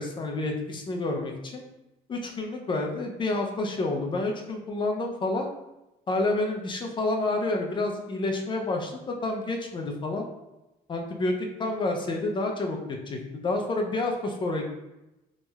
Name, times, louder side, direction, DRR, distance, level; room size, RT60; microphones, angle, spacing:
voice 1, 0.0-1.6 2.1-5.5 6.1-10.3 10.9-11.3 11.6-14.7, left 2 dB, 30° left, 2 dB, 0.5 m, -29 dB
3.0 x 2.8 x 2.3 m, 0.97 s
cardioid pair, 110°, 17 cm